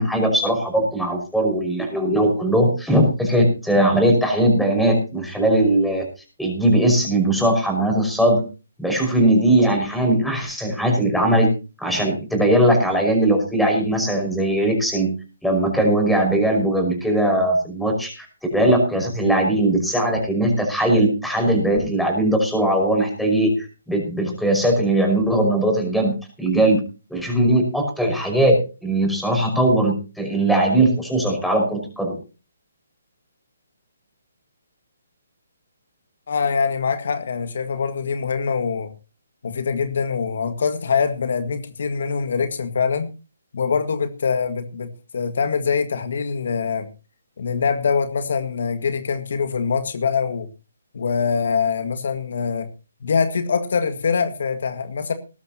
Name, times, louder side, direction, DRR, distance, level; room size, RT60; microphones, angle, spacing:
voice 1, 0.0-6.0 6.4-8.4 8.8-11.5 11.8-15.1 15.4-18.3 18.5-26.8 27.1-32.1, right 1 dB, ahead, 3 dB, 5.5 m, -19 dB
voice 2, 36.3-38.9 39.4-43.1 43.5-46.9 47.4-50.5 50.9-52.7 53.0-55.1, left 5 dB, 60° left, 8 dB, 1.8 m, -23 dB
20.5 x 11.5 x 2.9 m, 0.32 s
hypercardioid pair, 150°, 0 cm